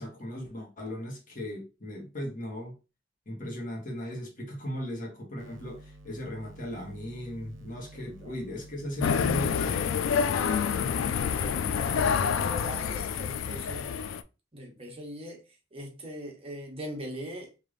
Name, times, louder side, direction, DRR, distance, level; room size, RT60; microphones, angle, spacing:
voice 1, 0.0-2.7 3.3-9.9, equal, 45° left, 1.3 m, -37 dB
sound 1, 5.4-10.8, right 1 dB, 80° right, 0.6 m, -50 dB
sound 2, 9.0-14.2, left 7 dB, 90° left, 0.3 m, -27 dB
voice 2, 10.7-14.0 14.5-15.4 15.7-17.5, equal, 30° right, 1.0 m, -41 dB
3.3 x 2.7 x 3.8 m
head